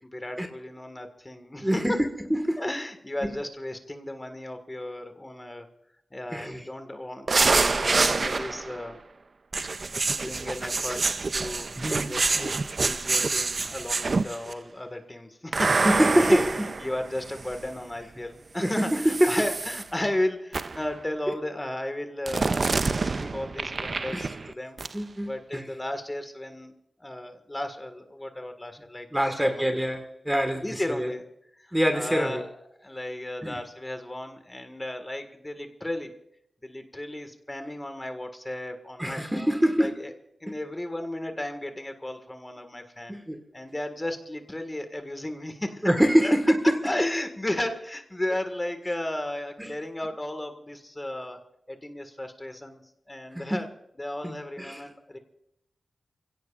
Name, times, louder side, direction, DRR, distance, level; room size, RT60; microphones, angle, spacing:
voice 1, 0.0-2.0 2.6-5.7 6.1-9.0 10.1-11.1 11.3-11.7 12.0-16.4 16.8-24.8 25.2-26.7 27.0-29.8 30.6-31.2 31.5-32.5 32.8-36.1 36.6-40.1 40.4-43.2 43.5-45.9 46.2-46.3 46.6-51.4 51.7-52.8 53.1-53.7 54.0-55.2, left 1 dB, 15° left, 6 dB, 1.8 m, -34 dB
voice 2, 1.6-2.6 3.2-3.3 6.3-6.7 11.8-12.2 15.8-16.4 18.6-19.3 24.1-24.3 24.9-25.6 29.1-31.1 31.7-32.4 33.4-33.6 39.0-39.9 43.1-43.4 45.8-46.8 49.6-49.7 53.3-53.6 54.2-54.8, equal, 10° right, 5 dB, 1.6 m, -25 dB
sound 1, 7.3-8.8 9.5-14.5 15.5-17.7 18.6-19.8 20.5-20.9 22.3-24.5 24.8-24.9, right 3 dB, 50° right, 0.5 m, -27 dB
28.5 x 17.0 x 2.5 m, 0.79 s
wide cardioid pair, 105°, 0 cm